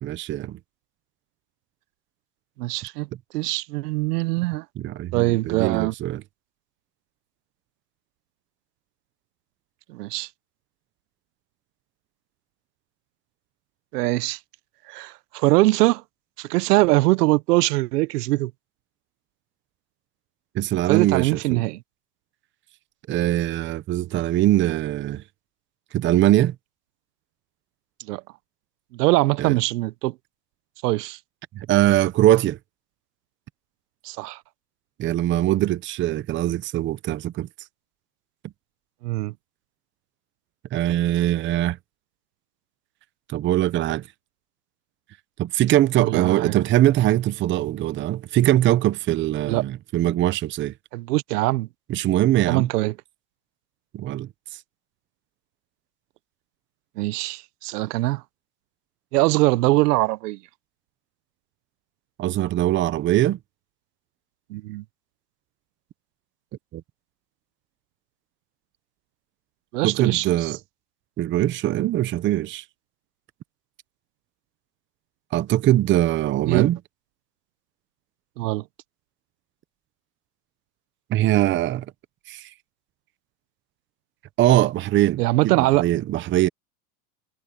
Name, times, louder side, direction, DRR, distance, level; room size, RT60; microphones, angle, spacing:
voice 1, 0.0-0.6 4.8-6.2 20.5-21.6 23.1-25.2 25.9-26.5 29.4-29.6 31.5-32.6 35.0-37.5 40.7-41.8 43.3-44.0 45.4-50.7 51.9-52.7 53.9-54.3 62.2-63.4 66.7-66.8 69.8-70.6 71.2-72.6 75.3-76.8 81.1-81.9 82.3-82.5 84.4-85.5 85.8-86.5, right 14 dB, 25° right, 0.7 m, -22 dB
voice 2, 2.6-3.1 3.3-4.6 5.1-5.9 9.9-10.3 13.9-14.4 14.9-16.0 16.4-18.5 20.9-21.8 28.1-28.2 28.9-30.1 30.8-31.2 34.0-34.4 39.0-39.3 46.0-46.5 49.5-49.6 50.9-51.7 52.5-52.9 57.0-58.2 59.1-60.4 64.5-64.8 69.7-70.5 76.4-76.7 78.4-78.6 85.2-85.9, right 19 dB, 80° right, 0.9 m, -22 dB
supercardioid pair, 130°, 47 cm